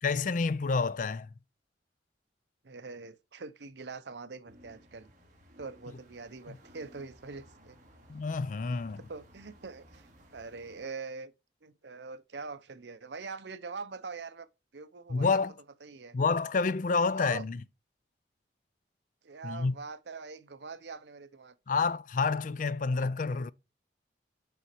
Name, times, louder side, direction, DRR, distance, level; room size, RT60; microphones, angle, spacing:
voice 1, 0.0-1.3 6.5-6.6 8.1-9.0 15.1-15.5 16.1-17.6 19.4-19.7 21.7-23.5, left 4 dB, 45° left, 0.4 m, -29 dB
voice 2, 2.6-5.1 5.6-7.8 9.1-10.1 10.3-11.3 11.6-14.5 14.7-15.4 15.8-16.2 17.1-17.4 19.2-21.8 23.3-23.4, right 4 dB, 75° right, 0.7 m, -43 dB
sound 1, 4.5-10.9, equal, 45° right, 2.4 m, -58 dB
7.0 x 5.0 x 4.4 m
head